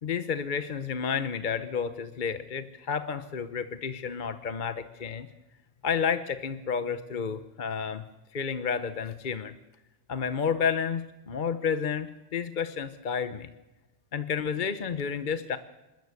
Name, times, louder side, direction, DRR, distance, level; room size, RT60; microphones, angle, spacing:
voice 1, 0.0-5.3 5.8-8.1 8.3-9.5 10.1-13.5 14.1-15.6, left 6 dB, 45° left, 11 dB, 0.9 m, -31 dB
28.0 x 13.0 x 8.3 m, 1.1 s
omnidirectional pair, 1.3 m